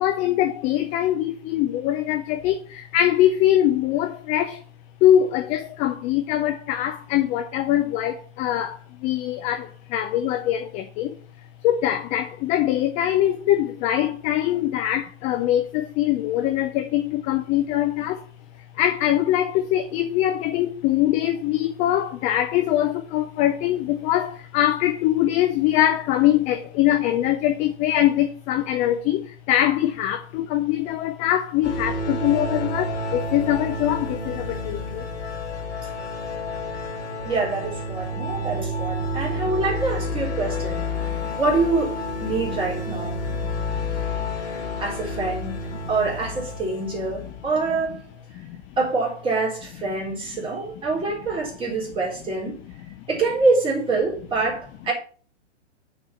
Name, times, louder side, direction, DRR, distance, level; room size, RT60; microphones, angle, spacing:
voice 1, 0.0-4.6 5.0-8.8 9.0-9.7 9.9-11.1 11.6-18.2 18.8-35.0, left 12 dB, 20° left, 0.5 m, -22 dB
sound 1, 31.6-47.5, left 1 dB, 70° left, 3.5 m, -30 dB
voice 2, 37.2-40.8 41.4-43.1 44.8-45.6 45.9-48.1 48.8-52.6 53.1-54.9, right 3 dB, 15° right, 3.7 m, -25 dB
7.0 x 4.7 x 6.9 m
hypercardioid pair, 130°, 35 cm